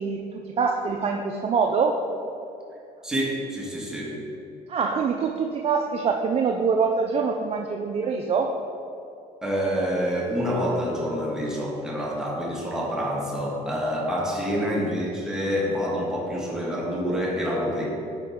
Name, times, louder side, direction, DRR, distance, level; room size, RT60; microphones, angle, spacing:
voice 1, 0.0-2.0 4.7-8.6 14.5-14.8, right 5 dB, 35° right, 3 dB, 0.4 m, -25 dB
voice 2, 3.0-4.1 9.4-17.8, equal, 5° right, -5 dB, 1.5 m, -27 dB
9.0 x 4.7 x 3.6 m, 2.7 s
cardioid pair, 110°, 17 cm